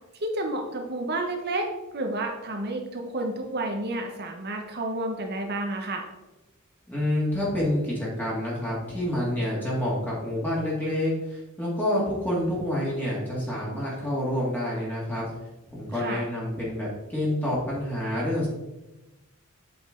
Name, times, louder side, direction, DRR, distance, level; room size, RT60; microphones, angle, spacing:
voice 1, 0.2-6.0 15.9-16.2, right 2 dB, 50° right, 3 dB, 1.0 m, -30 dB
voice 2, 6.9-15.3 15.7-18.5, left 1 dB, 10° left, -6 dB, 2.0 m, -28 dB
8.0 x 6.3 x 3.8 m, 1.0 s
head